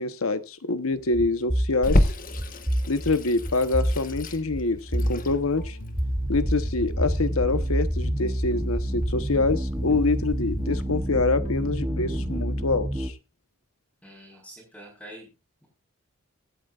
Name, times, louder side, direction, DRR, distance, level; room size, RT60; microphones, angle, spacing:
voice 1, 0.0-2.1 2.9-5.8 6.3-13.1, left 3 dB, 85° left, 1.1 m, -26 dB
sound 1, 1.1-13.1, equal, 15° right, 1.1 m, -28 dB
Water tap faucet / Sink (filling or washing), 1.8-10.8, left 1 dB, 40° left, 1.3 m, -31 dB
Guitar, 4.8-12.8, left 2 dB, 65° left, 1.1 m, -44 dB
voice 2, 14.0-15.3, right 1 dB, 5° left, 4.9 m, -45 dB
24.0 x 9.1 x 2.5 m
head